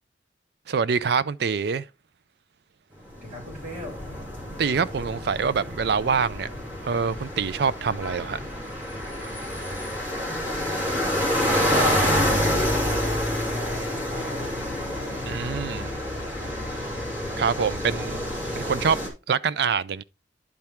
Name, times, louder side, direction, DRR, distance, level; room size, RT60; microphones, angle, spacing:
voice 1, 0.7-1.9 4.6-6.5 6.8-8.4 15.2-15.9 17.4-18.2 18.6-19.0 19.3-20.0, right 6 dB, 60° right, 0.4 m, -25 dB
sound 1, 3.1-19.1, equal, 10° right, 2.5 m, -28 dB
voice 2, 3.2-4.1 10.2-12.2 12.5-14.8 15.1-16.7 17.8-18.2, left 1 dB, 40° right, 3.7 m, -43 dB
10.5 x 4.4 x 3.5 m
head